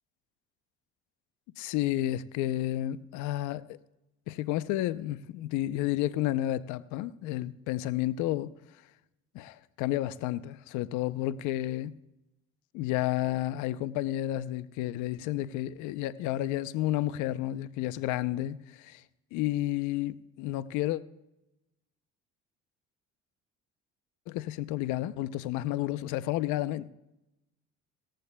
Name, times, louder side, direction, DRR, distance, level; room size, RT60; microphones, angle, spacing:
voice 1, 1.6-3.6 4.3-8.5 9.3-12.0 12.7-19.0 19.3-21.0 24.3-26.9, left 14 dB, 80° left, 0.6 m, -31 dB
18.0 x 14.0 x 2.2 m
supercardioid pair, 75°, 29 cm